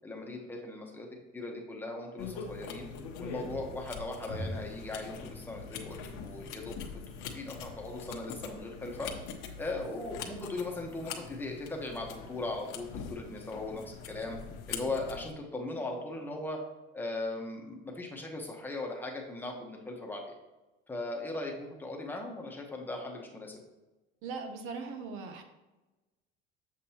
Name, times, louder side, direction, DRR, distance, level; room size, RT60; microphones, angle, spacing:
voice 1, 0.0-1.1 1.3-2.9 3.2-6.8 7.1-9.1 9.6-14.4 14.7-16.6 16.9-20.2 20.9-23.6, left 2 dB, 10° left, 0 dB, 1.0 m, -38 dB
sound 1, 2.2-15.3, left 5 dB, 75° left, 1.0 m, -43 dB
voice 2, 24.2-25.4, right 4 dB, 80° right, 6 dB, 1.0 m, -39 dB
7.5 x 7.3 x 2.9 m, 1.1 s
cardioid pair, 155°, 21 cm